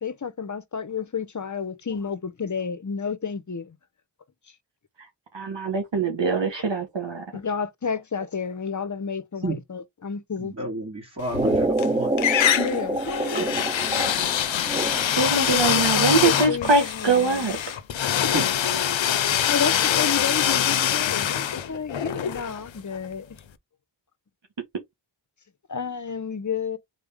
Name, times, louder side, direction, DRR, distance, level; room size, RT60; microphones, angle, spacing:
voice 1, 0.0-3.8 7.3-10.5 12.6-13.6 15.4-17.6 19.5-23.3 25.7-26.8, left 6 dB, 40° left, 0.8 m, -31 dB
voice 2, 5.3-7.2 13.3-13.5 15.2-17.6, right 4 dB, 70° right, 1.4 m, -23 dB
voice 3, 10.4-12.1 18.1-18.4, right 2 dB, 35° right, 2.2 m, -31 dB
sound 1, 11.3-11.9 12.2-23.1, left 10 dB, 75° left, 0.6 m, -24 dB
sound 2, 11.3-15.4, right 1 dB, 15° right, 0.6 m, -27 dB
4.0 x 3.4 x 3.5 m
wide cardioid pair, 70°, 46 cm